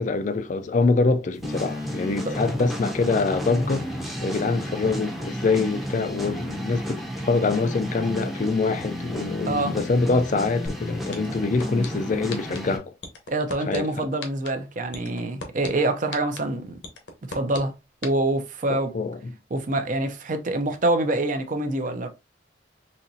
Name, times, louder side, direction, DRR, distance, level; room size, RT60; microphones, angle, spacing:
voice 1, 0.0-3.9 4.2-12.9 13.7-14.1 18.7-19.3, left 3 dB, 40° left, 0.4 m, -25 dB
sound 1, 1.4-12.8, equal, ahead, 0.6 m, -32 dB
voice 2, 9.5-9.8 13.3-16.8 17.3-17.7 18.0-18.9 19.5-22.1, right 2 dB, 45° right, 0.5 m, -25 dB
sound 2, 10.7-10.8 11.1-11.9 12.3-12.6 13.0-13.8 14.2-14.5 14.9-15.7 16.1-16.4 16.8-17.6 18.0-18.1, left 4 dB, 70° left, 0.9 m, -34 dB
4.0 x 2.9 x 2.6 m
head